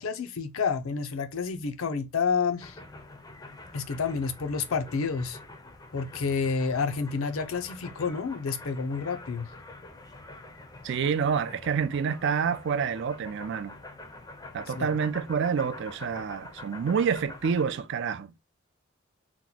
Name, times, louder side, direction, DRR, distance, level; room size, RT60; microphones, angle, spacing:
voice 1, 0.0-2.8 3.7-5.4 5.9-9.5 14.7-14.9, left 5 dB, 75° left, 0.5 m, -29 dB
sound 1, 2.6-17.7, left 2 dB, 15° left, 0.5 m, -46 dB
voice 2, 10.8-13.7 14.5-18.3, right 6 dB, 55° right, 0.3 m, -28 dB
2.9 x 2.2 x 3.9 m
head